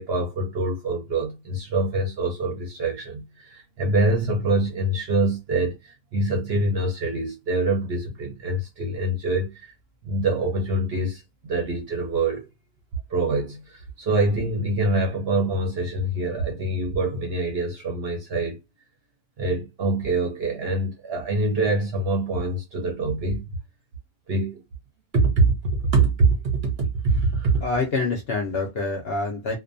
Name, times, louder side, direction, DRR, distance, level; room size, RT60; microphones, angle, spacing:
voice 1, 0.0-9.7 10.0-12.5 13.1-18.6 19.4-23.5 24.3-24.6 25.1-27.6, right 2 dB, 55° right, 0.7 m, -25 dB
voice 2, 27.6-29.6, left 3 dB, 60° left, 0.7 m, -26 dB
2.5 x 2.2 x 2.5 m
omnidirectional pair, 1.5 m